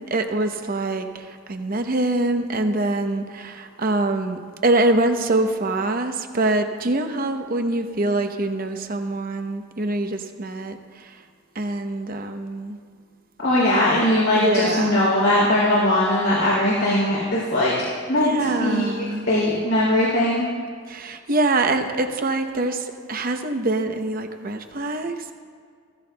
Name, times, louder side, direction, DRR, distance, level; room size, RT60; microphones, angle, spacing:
voice 1, 0.0-11.2 11.5-12.8 14.3-15.1 18.2-19.3 20.9-25.3, right 2 dB, 45° right, 6 dB, 0.8 m, -24 dB
voice 2, 13.4-17.7 18.1-20.4, left 1 dB, 90° left, -6 dB, 3.2 m, -20 dB
15.5 x 15.0 x 2.3 m, 2.1 s
head